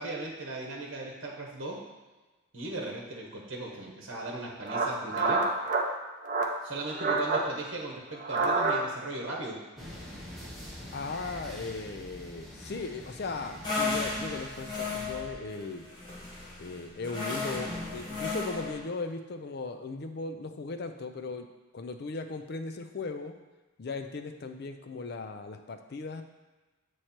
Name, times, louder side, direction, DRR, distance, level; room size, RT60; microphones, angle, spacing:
voice 1, 0.0-1.8 2.5-5.4 6.6-9.6, right 2 dB, 60° right, -2 dB, 1.0 m, -37 dB
sound 1, 4.1-4.3 4.6-5.9 6.2-6.6 6.9-7.5 8.2-9.1, right 3 dB, 35° right, 0.6 m, -28 dB
sound 2, 9.8-15.3, equal, ahead, 0.9 m, -45 dB
voice 2, 10.9-15.8 16.6-21.5 21.7-23.4 23.8-26.2, left 3 dB, 50° left, 6 dB, 0.4 m, -37 dB
sound 3, 13.6-18.8, left 3 dB, 20° left, 1.2 m, -34 dB
7.8 x 3.1 x 4.3 m, 1.2 s
head